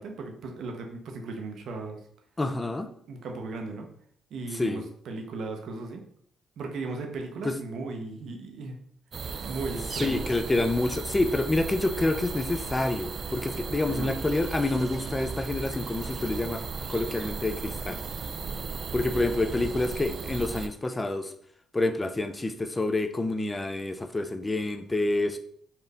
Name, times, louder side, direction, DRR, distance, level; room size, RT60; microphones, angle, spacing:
voice 1, 0.0-2.0 3.1-3.9 4.3-6.0 6.6-8.8 9.4-10.3 13.9-14.2, right 3 dB, 70° right, 3 dB, 0.8 m, -36 dB
voice 2, 2.4-2.9 4.5-4.8 7.4-7.6 10.0-16.6 16.9-18.0 18.9-21.3 21.7-25.4, left 2 dB, 20° left, 9 dB, 0.4 m, -28 dB
sound 1, 9.1-20.7, right 5 dB, 50° right, 0.3 m, -36 dB
4.2 x 2.6 x 3.4 m, 0.62 s
cardioid pair, 90°, 0 cm